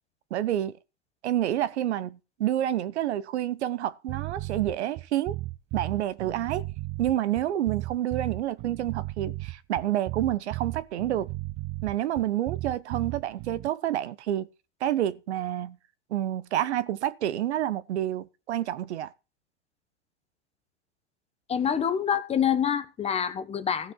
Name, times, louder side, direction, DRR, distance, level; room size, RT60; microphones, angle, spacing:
voice 1, 0.3-0.8 1.2-5.4 5.7-6.6 7.0-11.3 11.8-14.5 14.8-15.8 16.1-19.1, right 12 dB, 70° right, 1.2 m, -28 dB
sound 1, 4.1-13.7, right 19 dB, 35° right, 0.7 m, -35 dB
voice 2, 21.5-23.9, left 8 dB, 15° left, 1.0 m, -26 dB
15.5 x 6.3 x 4.7 m
hypercardioid pair, 120°, 35 cm